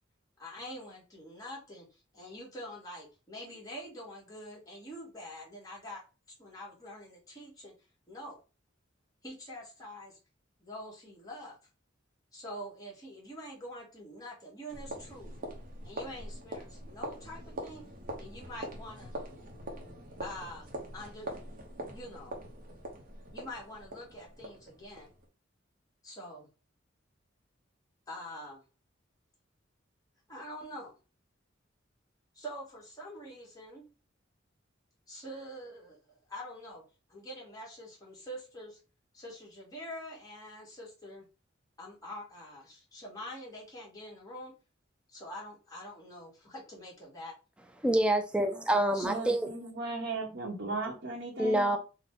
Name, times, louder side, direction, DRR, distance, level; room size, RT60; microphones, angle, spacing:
voice 1, 0.4-1.9 2.1-6.0 6.4-7.7 8.1-8.4 9.2-10.2 10.6-11.6 12.3-15.3 15.8-17.8 18.2-19.1 20.2-20.7 20.9-21.4 21.9-22.4 23.3-25.1 26.0-26.5 28.1-28.6 30.3-31.0 32.3-33.8 35.1-36.0 36.3-36.8 37.1-38.8 39.1-41.2 41.8-44.5 45.1-47.3 48.9-49.2, equal, 20° left, 1.5 m, -45 dB
sound 1, 14.7-25.3, right 1 dB, 45° right, 0.8 m, -43 dB
voice 2, 47.8-49.5 51.4-51.8, right 1 dB, 5° right, 0.4 m, -27 dB
voice 3, 49.0-51.8, right 3 dB, 70° right, 1.0 m, -37 dB
3.8 x 2.2 x 3.5 m
head